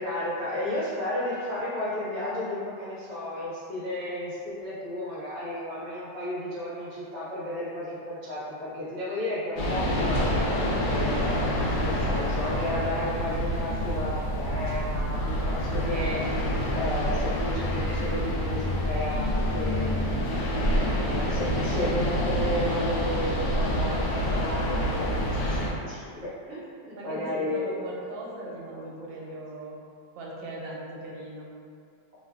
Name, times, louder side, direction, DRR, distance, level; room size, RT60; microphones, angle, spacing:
voice 1, 0.0-11.2 11.8-19.9 20.5-27.8 28.7-29.1, left 1 dB, 55° right, -10 dB, 1.1 m, -33 dB
sound 1, 9.6-25.7, equal, 75° left, 1.0 m, -27 dB
voice 2, 26.8-29.8 30.2-31.5, right 1 dB, 80° right, -3 dB, 1.3 m, -39 dB
3.1 x 2.2 x 2.3 m, 2.2 s
omnidirectional pair, 2.1 m